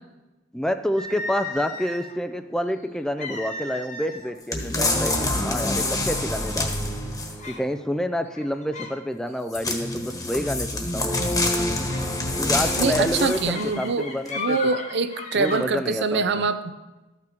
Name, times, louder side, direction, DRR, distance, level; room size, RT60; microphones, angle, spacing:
voice 1, 0.5-6.8 7.5-11.1 12.4-14.6 15.3-16.4, equal, 5° left, 8 dB, 0.3 m, -28 dB
sound 1, 1.0-2.2 3.2-4.3 4.6-4.9 5.6-5.7 6.2-6.6 7.4-7.7 8.3-9.0 9.3-9.6 11.1-11.3 11.9-15.6, left 3 dB, 40° left, 1.0 m, -36 dB
sound 2, 4.5-7.5 9.5-13.7 14.3-14.4, left 2 dB, 20° left, 1.3 m, -26 dB
voice 2, 12.8-14.1 14.3-16.7, right 4 dB, 60° right, 10 dB, 0.6 m, -24 dB
13.0 x 6.0 x 4.5 m, 1.1 s
head